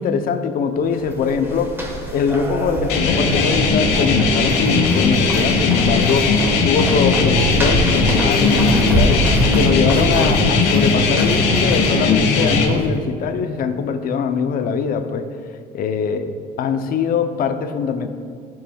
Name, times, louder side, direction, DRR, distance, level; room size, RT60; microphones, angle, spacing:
voice 1, 0.0-1.8 2.1-15.3 15.7-18.1, left 6 dB, 60° left, 8 dB, 0.7 m, -22 dB
sound 1, 0.8-12.9, right 1 dB, 15° right, 1.3 m, -25 dB
sound 2, 2.9-12.7, left 4 dB, 90° left, 1.2 m, -18 dB
14.0 x 7.2 x 2.3 m, 2.2 s
cardioid pair, 110°, 17 cm